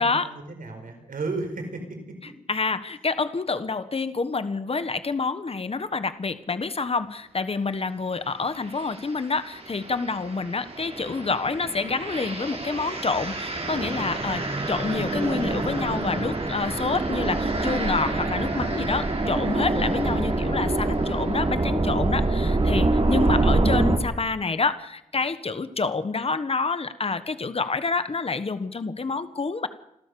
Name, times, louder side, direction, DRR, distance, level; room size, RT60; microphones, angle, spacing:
voice 1, 0.0-2.2 23.3-23.5, right 3 dB, 90° right, 5 dB, 4.7 m, -34 dB
voice 2, 2.5-29.7, left 4 dB, 45° left, 11 dB, 1.4 m, -28 dB
sound 1, 8.7-9.0 9.5-24.0, right 2 dB, 45° right, 3.8 m, -26 dB
29.0 x 13.0 x 7.0 m, 0.83 s
wide cardioid pair, 75°, 14 cm